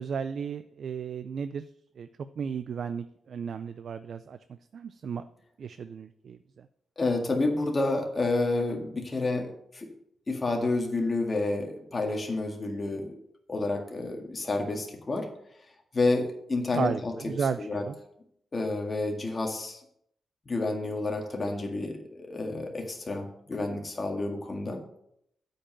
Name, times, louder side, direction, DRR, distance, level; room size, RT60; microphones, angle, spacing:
voice 1, 0.0-1.7 2.0-2.1 2.4-4.4 4.7-5.2 5.6-6.7 16.7-17.9, right 6 dB, 60° right, 11 dB, 0.4 m, -34 dB
voice 2, 7.0-9.9 10.3-13.2 13.5-15.3 15.9-17.1 17.6-17.9 18.5-19.8 20.5-24.8, left 2 dB, 30° left, 2 dB, 1.8 m, -29 dB
8.5 x 5.3 x 7.6 m, 0.73 s
wide cardioid pair, 130°, 0 cm